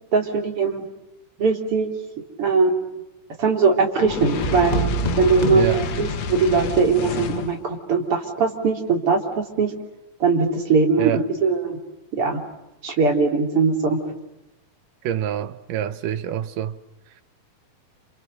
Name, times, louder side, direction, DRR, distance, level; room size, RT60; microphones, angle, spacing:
voice 1, 0.1-0.8 1.4-1.9 2.4-2.9 3.4-4.8 5.2-9.7 10.2-11.8 12.1-12.4 12.8-14.0, right 4 dB, 40° right, 4.2 m, -20 dB
Fire, 3.9-7.6, left 6 dB, 55° left, 2.4 m, -29 dB
sound 1, 4.4-6.7, right 2 dB, 20° left, 1.0 m, -27 dB
voice 2, 5.4-5.8 11.0-11.2 15.0-16.8, right 10 dB, 75° right, 2.6 m, -26 dB
30.0 x 28.5 x 6.7 m
omnidirectional pair, 4.0 m